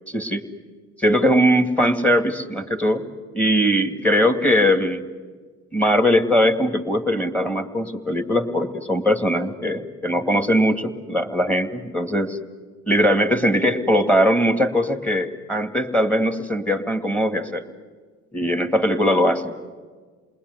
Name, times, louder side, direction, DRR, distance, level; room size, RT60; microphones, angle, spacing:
voice 1, 0.1-0.4 1.0-3.0 3.3-5.0 5.7-12.4 12.9-17.6 18.3-19.5, equal, 5° left, 7 dB, 2.4 m, -20 dB
29.0 x 20.5 x 9.7 m, 1.5 s
cardioid pair, 100°, 31 cm